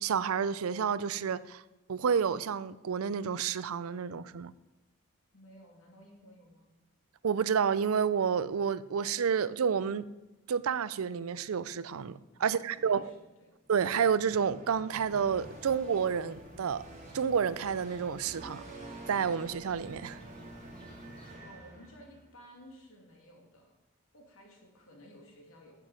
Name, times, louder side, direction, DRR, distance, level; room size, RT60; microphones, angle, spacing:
voice 1, 0.0-1.6 1.9-4.5 7.2-10.0 10.5-13.1 13.7-16.8 17.1-18.6 19.1-20.2, right 7 dB, 80° right, 0.4 m, -30 dB
voice 2, 5.3-6.7 12.3-13.5 21.4-23.7 24.1-25.9, equal, 75° left, 2.8 m, -55 dB
sound 1, 13.7-22.3, right 1 dB, 30° right, 1.6 m, -49 dB
sound 2, 14.9-21.4, equal, 5° left, 1.7 m, -56 dB
9.7 x 7.6 x 5.0 m
head